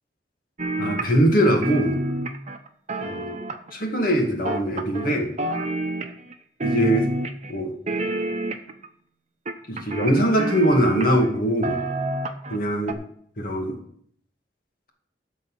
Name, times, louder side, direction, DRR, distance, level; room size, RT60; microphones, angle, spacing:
sound 1, 0.6-1.4 1.6-3.8 4.4-5.1 5.4-6.3 6.6-7.5 7.9-8.9 9.5-11.3 11.6-12.6 12.9-13.0, right 2 dB, 40° right, 0.8 m, -28 dB
voice 1, 0.8-2.0 3.0-3.4 3.7-5.3 6.6-7.1 7.5-7.7 9.7-11.8 12.5-13.0 13.4-13.8, equal, 55° left, 1 dB, 2.1 m, -22 dB
12.0 x 4.2 x 7.7 m, 0.65 s
head